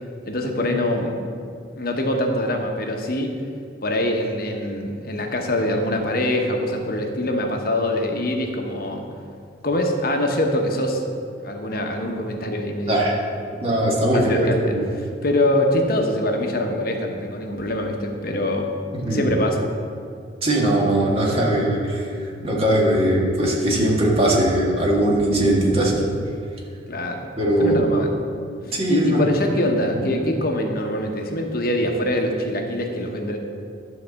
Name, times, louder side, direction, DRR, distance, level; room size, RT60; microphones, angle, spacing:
voice 1, 0.3-1.2 1.7-3.3 3.8-9.0 9.6-11.0 11.4-13.1 14.1-18.7 19.1-19.6 26.9-27.3 27.6-28.2 28.7-33.4, left 1 dB, 55° left, 3 dB, 1.0 m, -24 dB
voice 2, 13.6-14.9 19.0-19.3 20.4-26.0 27.4-27.8 28.7-29.2, right 1 dB, 35° right, -3 dB, 1.8 m, -20 dB
11.5 x 4.2 x 7.0 m, 2.3 s
head